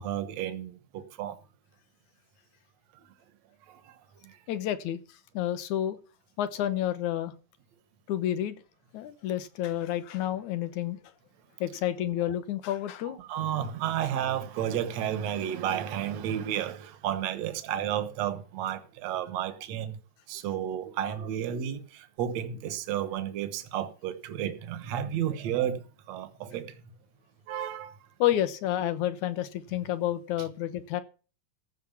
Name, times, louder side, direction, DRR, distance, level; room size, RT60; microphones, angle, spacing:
voice 1, 0.0-1.4 2.9-3.1 3.7-4.0 4.2-4.4 13.0-20.0 20.3-26.8 27.5-28.0 28.8-28.9, right 10 dB, 65° right, 2.3 m, -32 dB
voice 2, 4.5-5.0 5.3-6.0 6.4-7.3 8.1-8.6 8.9-11.0 11.6-13.2 28.2-31.0, left 12 dB, 80° left, 2.5 m, -29 dB
14.5 x 6.1 x 7.1 m
omnidirectional pair, 3.4 m